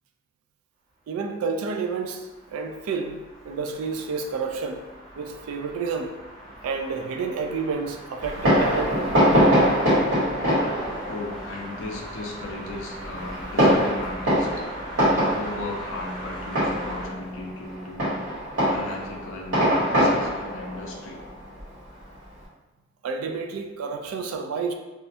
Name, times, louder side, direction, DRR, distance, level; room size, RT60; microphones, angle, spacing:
voice 1, 1.1-3.2 3.4-4.8 5.2-6.1 6.6-9.7 23.0-24.7, right 4 dB, 90° right, 5 dB, 0.3 m, -30 dB
sound 1, 1.3-17.1, right 1 dB, 20° right, 0.8 m, -41 dB
Fireworks, 8.2-22.4, equal, 60° right, 1.2 m, -24 dB
voice 2, 11.1-14.7 15.1-18.2 18.6-21.3, left 2 dB, 65° left, 1 dB, 0.4 m, -36 dB
2.3 x 2.1 x 2.7 m, 1.2 s
head